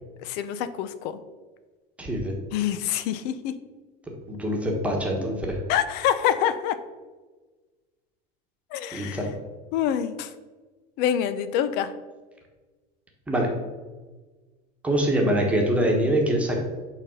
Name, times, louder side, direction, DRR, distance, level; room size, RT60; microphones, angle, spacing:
voice 1, 0.2-1.2 2.5-3.5 5.7-6.8 8.7-9.2 9.7-10.3 11.0-11.9, left 10 dB, 60° left, 13 dB, 0.7 m, -26 dB
voice 2, 2.0-2.3 4.3-5.6 8.9-9.3 13.3-13.5 14.8-16.6, right 1 dB, 5° right, -1 dB, 1.3 m, -24 dB
8.9 x 4.2 x 6.4 m, 1.3 s
cardioid pair, 165°, 20 cm